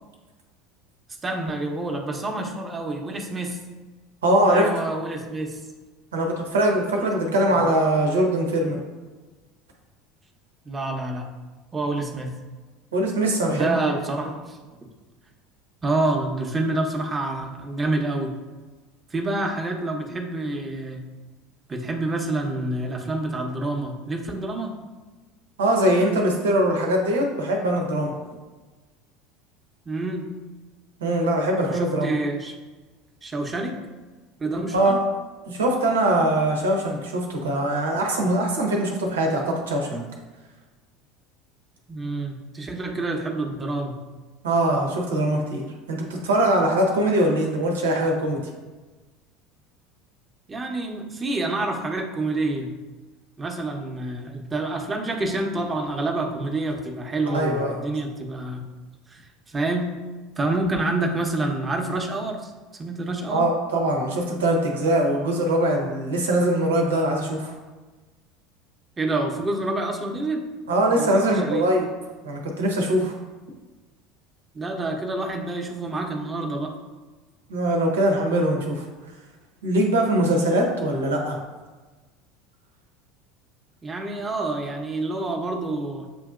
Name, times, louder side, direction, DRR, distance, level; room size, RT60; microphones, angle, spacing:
voice 1, 1.2-3.6 4.5-5.6 7.2-7.3 7.6-7.7 10.6-11.3 11.7-12.3 13.5-14.6 15.8-18.3 19.1-21.0 21.7-24.8 29.9-30.4 31.6-32.5 33.2-33.7 34.4-35.0 41.9-43.9 50.5-52.7 53.4-58.6 59.1-60.0 60.4-63.5 69.0-70.4 71.0-71.7 74.5-76.7 83.8-86.1, right 2 dB, 25° right, 2 dB, 0.9 m, -28 dB
voice 2, 4.2-4.7 6.1-8.8 12.9-13.9 14.2-14.3 25.6-28.1 31.0-32.1 34.7-35.0 35.5-40.0 44.4-48.4 57.3-57.7 63.3-67.5 70.7-71.9 72.2-73.1 77.5-78.9 79.6-81.4, right 1 dB, 85° right, 1 dB, 0.9 m, -22 dB
7.6 x 2.8 x 2.4 m, 1.2 s
hypercardioid pair, 75°, 0 cm